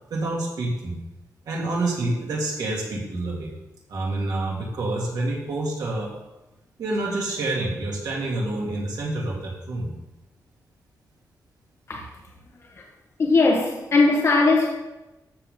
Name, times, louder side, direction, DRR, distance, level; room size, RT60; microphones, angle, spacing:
voice 1, 0.1-0.9 1.5-3.5 3.9-6.1 6.8-9.9, right 2 dB, 85° right, 2.7 m, -27 dB
voice 2, 13.2-14.7, left 3 dB, 45° left, 1.2 m, -19 dB
13.5 x 7.4 x 3.7 m
wide cardioid pair, 180°, 7 cm